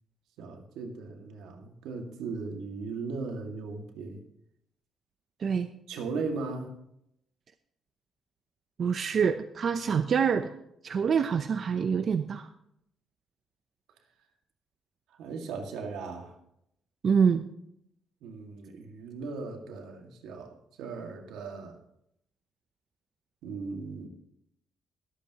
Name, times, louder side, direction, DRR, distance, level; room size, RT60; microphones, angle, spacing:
voice 1, 0.4-4.2 5.9-6.7 15.2-16.4 18.2-21.8 23.4-24.1, right 4 dB, 90° right, 3 dB, 2.0 m, -37 dB
voice 2, 8.8-10.5 10.8-12.5 17.0-17.4, right 6 dB, 55° right, 9 dB, 0.6 m, -26 dB
22.0 x 8.3 x 3.0 m, 0.76 s
cardioid pair, 90°, 0 cm